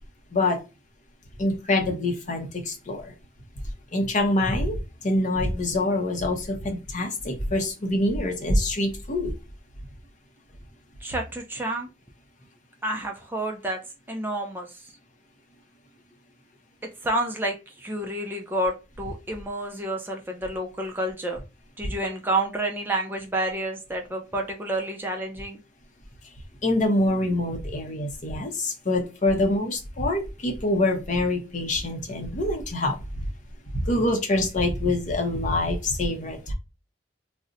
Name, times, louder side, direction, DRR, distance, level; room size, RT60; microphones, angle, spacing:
voice 1, 1.4-3.1 3.9-9.3 26.6-33.2 33.7-36.5, left 1 dB, 40° left, 4 dB, 0.6 m, -25 dB
voice 2, 11.0-11.9 12.8-13.8 14.1-14.7 17.0-21.4 21.8-25.6, right 1 dB, 10° right, 2 dB, 0.3 m, -29 dB
2.5 x 2.1 x 3.8 m, 0.28 s
head